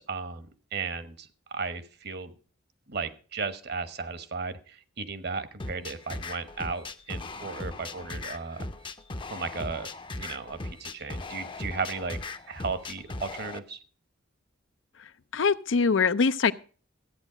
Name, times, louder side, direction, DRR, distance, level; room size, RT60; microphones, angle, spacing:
voice 1, 0.0-2.3 2.9-8.7 9.3-9.9 10.2-12.2 12.5-13.8, right 4 dB, 55° right, 1.1 m, -35 dB
sound 1, 5.6-13.6, left 2 dB, 25° left, 0.7 m, -38 dB
voice 2, 15.3-16.5, left 5 dB, 70° left, 0.5 m, -23 dB
13.5 x 9.1 x 5.0 m
head